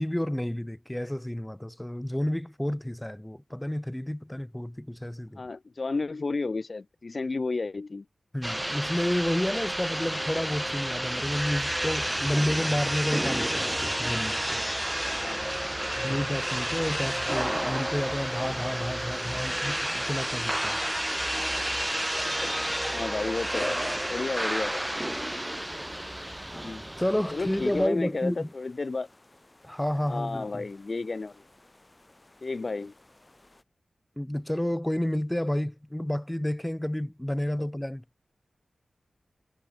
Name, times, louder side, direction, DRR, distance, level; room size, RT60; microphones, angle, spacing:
voice 1, 0.0-5.4 8.3-14.6 16.0-20.8 27.0-28.5 29.6-30.7 34.2-38.0, left 1 dB, 10° left, 1.8 m, -30 dB
voice 2, 5.4-8.0 15.1-16.3 22.2-22.6 22.9-24.9 26.5-26.9 27.3-29.1 30.0-31.4 32.4-32.9, left 3 dB, 55° left, 0.7 m, -33 dB
sound 1, 8.4-27.9, right 1 dB, 10° right, 0.3 m, -30 dB
sound 2, 17.0-33.6, left 2 dB, 30° left, 7.5 m, -59 dB
cardioid pair, 50°, 0 cm